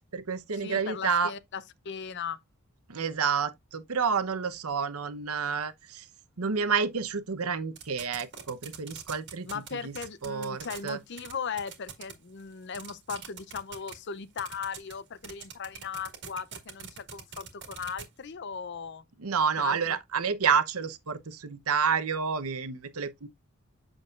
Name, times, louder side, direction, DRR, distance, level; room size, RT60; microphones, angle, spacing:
voice 1, 0.0-1.3 2.9-6.1 6.4-9.9 10.2-11.0 19.2-23.3, right 6 dB, 80° right, 0.9 m, -29 dB
voice 2, 0.5-2.4 9.5-19.0 19.6-19.8, left 6 dB, 50° left, 0.5 m, -38 dB
sound 1, 7.8-9.7 9.9-10.9 11.2-11.3 11.6-12.1 12.4-12.5 12.7-13.9 14.4-14.9 15.2-18.0, right 8 dB, 50° right, 1.7 m, -42 dB
7.9 x 6.2 x 2.4 m
head